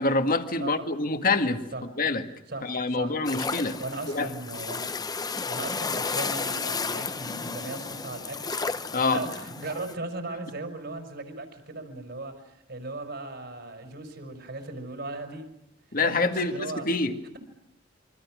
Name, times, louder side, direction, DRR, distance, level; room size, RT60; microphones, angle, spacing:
voice 1, 0.0-1.6 2.0-2.2 2.6-3.8 4.1-4.3 8.9-9.2 15.9-17.1, left 3 dB, 50° left, 2.0 m, -26 dB
voice 2, 2.5-3.2 3.8-4.9 5.5-15.5 16.0-16.9, right 2 dB, 60° right, 5.3 m, -37 dB
sound 1, 3.2-9.9, left 4 dB, 20° left, 0.8 m, -33 dB
28.0 x 24.0 x 6.3 m
head